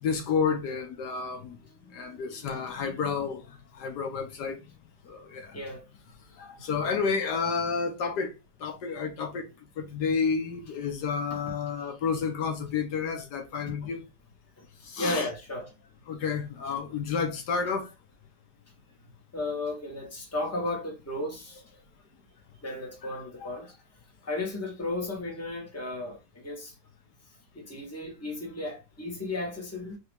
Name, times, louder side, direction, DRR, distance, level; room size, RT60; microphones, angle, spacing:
voice 1, 0.0-1.6 1.8-4.6 5.0-5.6 6.3-8.3 8.6-9.5 9.8-14.0 14.8-15.3 16.1-17.9 23.0-23.1 23.4-23.5, left 5 dB, 70° left, 1.4 m, -30 dB
voice 2, 1.7-2.5 5.5-5.8 13.8-13.9 14.6-14.7 15.0-15.7 19.3-21.6 22.6-23.8 24.3-26.7 27.5-30.0, left 2 dB, 10° left, 1.2 m, -34 dB
4.1 x 2.9 x 3.3 m
omnidirectional pair, 1.9 m